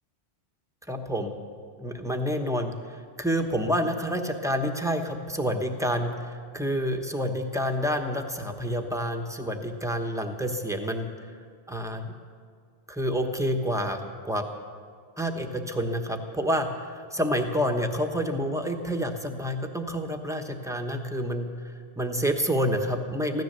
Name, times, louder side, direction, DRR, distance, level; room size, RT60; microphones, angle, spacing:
voice 1, 0.9-1.3 1.8-2.7 3.2-11.1 11.7-12.1 12.9-14.0 14.2-14.4 15.2-21.5 22.0-23.4, equal, 5° right, 4 dB, 1.0 m, -28 dB
15.5 x 13.5 x 6.7 m, 2.1 s
omnidirectional pair, 1.1 m